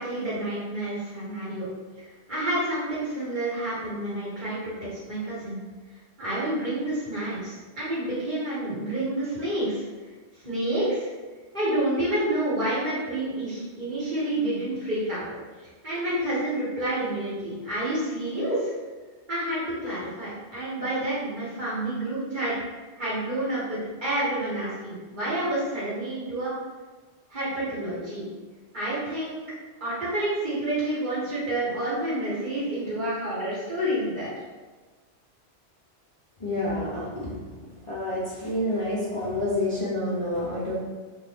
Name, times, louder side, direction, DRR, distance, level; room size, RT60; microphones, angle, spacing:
voice 1, 0.0-1.7 2.0-5.6 6.2-9.8 10.4-11.1 11.5-15.3 15.6-18.7 19.3-22.5 22.9-26.5 27.3-28.3 28.7-29.4 29.8-34.4, right 1 dB, 45° right, -9 dB, 1.3 m, -29 dB
voice 2, 36.4-37.4 37.9-40.8, left 1 dB, 50° left, -7 dB, 0.4 m, -28 dB
2.4 x 2.3 x 3.2 m, 1.3 s
omnidirectional pair, 1.1 m